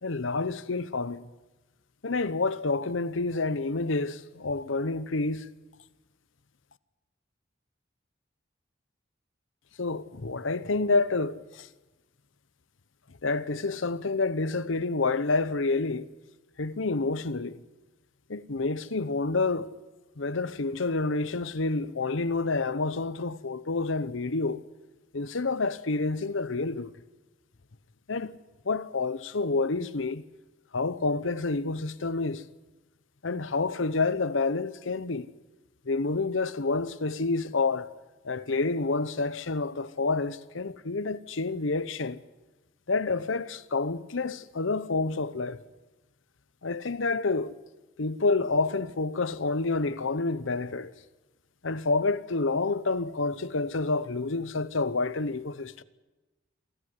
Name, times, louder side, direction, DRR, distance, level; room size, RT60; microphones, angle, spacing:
voice 1, 0.0-1.2 2.0-5.5 9.8-11.7 13.2-16.1 16.6-17.6 18.3-19.7 20.2-24.6 25.1-26.9 28.1-28.3 28.6-30.2 30.7-32.4 33.2-35.3 35.9-37.9 38.2-42.2 42.9-45.6 46.6-47.6 48.0-50.9 51.6-55.8, left 3 dB, 85° left, 0.9 m, -28 dB
26.0 x 14.0 x 9.7 m
head